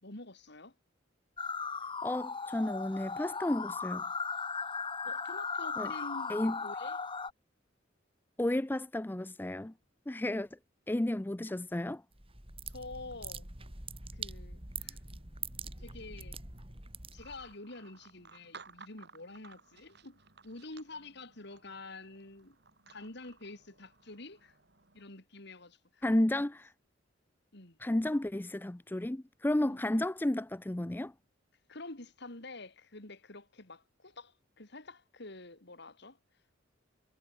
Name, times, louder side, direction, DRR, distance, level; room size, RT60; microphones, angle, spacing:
voice 1, 0.0-0.7 5.0-7.0 12.7-13.5 14.1-15.0 15.8-16.4 17.1-22.6 22.9-24.6 24.9-26.0 27.5-27.8 29.6-29.8 31.7-36.2, left 2 dB, 60° left, 3.4 m, -48 dB
sound 1, 1.4-7.3, left 5 dB, 25° left, 1.7 m, -37 dB
voice 2, 2.0-4.0 5.8-5.9 6.3-6.5 8.4-9.7 10.1-10.5 10.9-12.0 26.0-26.7 27.8-31.1, left 1 dB, 10° left, 0.4 m, -32 dB
sound 2, 12.1-17.5, right 4 dB, 30° right, 4.7 m, -44 dB
sound 3, 17.2-25.1, right 5 dB, 60° right, 5.9 m, -57 dB
head